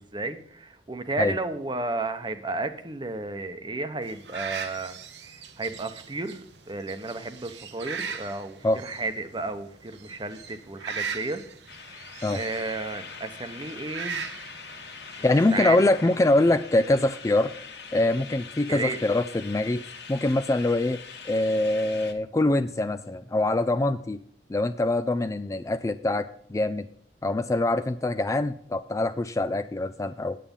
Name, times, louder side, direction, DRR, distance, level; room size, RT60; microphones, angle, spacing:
voice 1, 0.0-4.9 5.2-11.4 11.9-12.0 12.3-14.2 15.2-15.8 18.7-19.0, right 3 dB, 25° right, 9 dB, 0.9 m, -33 dB
sound 1, 4.0-16.3, right 6 dB, 75° right, 0.9 m, -40 dB
sound 2, 11.7-22.1, left 5 dB, 70° left, 1.5 m, -43 dB
voice 2, 15.2-17.5 17.9-19.8 20.1-21.0 21.2-24.2 24.5-26.9 27.2-30.4, left 2 dB, 20° left, 10 dB, 0.4 m, -24 dB
9.3 x 8.5 x 5.3 m, 0.63 s
head